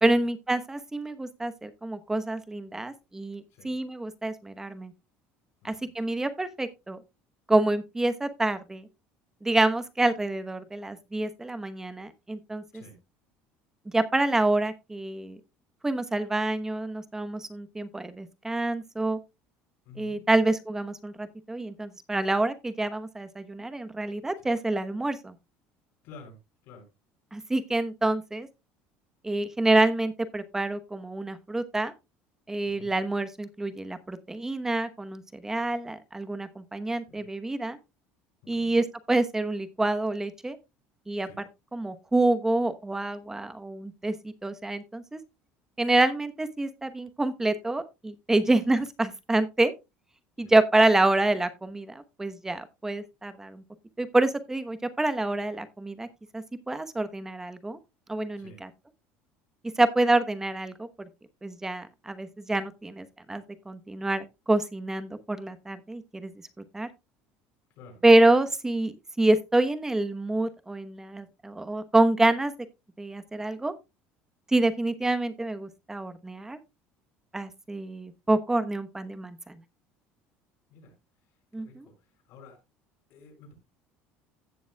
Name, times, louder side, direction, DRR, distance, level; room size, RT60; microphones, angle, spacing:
voice 1, 0.0-4.9 5.6-7.0 7.5-8.9 9.4-12.6 13.9-15.4 15.8-19.2 20.0-25.3 27.3-28.5 29.2-31.9 32.5-37.8 38.5-40.6 41.1-41.3 41.7-45.2 45.8-49.7 50.4-53.6 54.0-56.1 56.3-57.8 58.1-58.7 59.8-60.9 61.4-66.3 66.7-66.9 68.0-72.5 73.0-73.7 74.5-76.6 77.3-79.6 81.5-81.9, right 2 dB, 10° right, 1.0 m, -27 dB
voice 2, 19.8-20.2 24.4-24.5 26.0-26.4 26.6-26.9 32.6-33.0 37.1-37.2 38.5-38.7 41.2-41.4 50.4-50.5 58.4-58.6 67.8-68.0 80.7-80.9 81.6-81.9 82.3-82.6 83.1-83.6, left 3 dB, 70° left, 6.4 m, -50 dB
16.0 x 7.0 x 2.3 m
cardioid pair, 135°, 5 cm